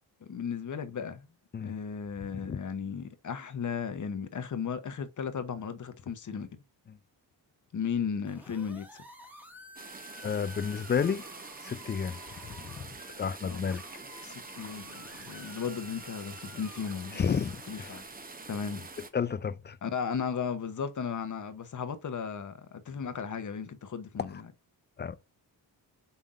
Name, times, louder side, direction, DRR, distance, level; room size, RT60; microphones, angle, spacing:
voice 1, 0.2-1.3 1.6-6.5 7.7-9.0 13.4-13.6 14.2-17.2 17.7-18.1 18.5-18.9 19.8-24.5, left 6 dB, 45° left, 0.9 m, -35 dB
sound 1, 8.2-12.9 13.7-17.8, left 1 dB, 5° right, 1.2 m, -51 dB
sound 2, 9.7-19.1, right 3 dB, 20° right, 0.7 m, -46 dB
voice 2, 10.2-11.2 11.6-13.8 17.2-18.0 19.1-19.8 25.0-25.2, left 6 dB, 25° left, 0.3 m, -32 dB
5.6 x 3.5 x 2.5 m
cardioid pair, 90°, 44 cm